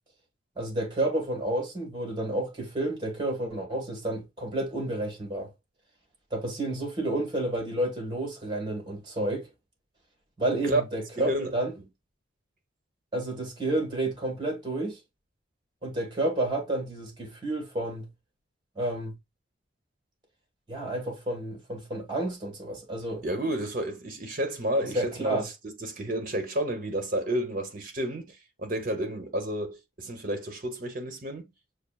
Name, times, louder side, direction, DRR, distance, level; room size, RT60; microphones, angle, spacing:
voice 1, 0.6-5.5 6.3-9.5 10.4-11.7 13.1-15.0 15.8-18.0 18.7-19.1 20.7-23.2 24.9-25.4, right 1 dB, 25° right, 1.4 m, -30 dB
voice 2, 11.2-11.5 23.2-25.4 25.8-31.5, right 1 dB, 45° right, 0.9 m, -30 dB
6.6 x 2.4 x 2.3 m
head